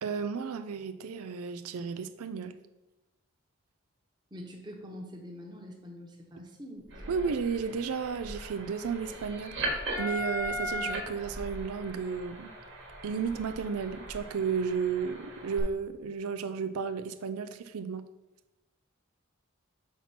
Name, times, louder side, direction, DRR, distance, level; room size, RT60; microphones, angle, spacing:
voice 1, 0.0-2.6 7.1-12.5 13.0-18.0, right 6 dB, 90° right, 10 dB, 0.4 m, -33 dB
voice 2, 4.3-7.2, equal, 20° right, 1 dB, 1.1 m, -45 dB
sound 1, 6.9-15.6, right 1 dB, 55° right, 1.5 m, -38 dB
5.9 x 4.3 x 5.9 m, 1.0 s
head